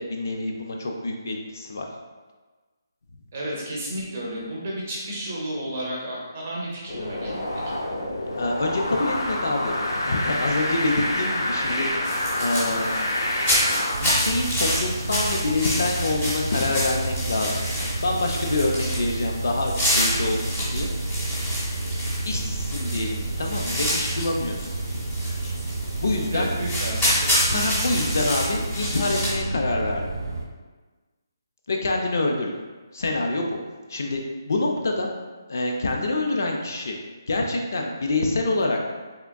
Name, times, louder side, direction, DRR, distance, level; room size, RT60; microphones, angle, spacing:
voice 1, 0.0-1.9 8.4-11.9 12.4-12.9 13.9-17.5 17.8-20.9 22.3-24.6 26.0-26.5 27.5-30.0 31.7-32.5 32.9-33.6 33.9-34.2 34.5-35.1 35.5-37.0 37.3-38.8, left 2 dB, 45° left, 1 dB, 0.4 m, -26 dB
voice 2, 3.3-7.7 26.3-27.6, right 1 dB, 25° right, -4 dB, 0.6 m, -32 dB
sound 1, 6.9-13.9, left 1 dB, 80° left, 0.7 m, -27 dB
sound 2, 12.0-29.3, equal, 10° left, 0.7 m, -28 dB
sound 3, 13.9-30.5, right 2 dB, 70° right, 0.5 m, -30 dB
3.6 x 3.4 x 2.2 m, 1.3 s
hypercardioid pair, 180°, 2 cm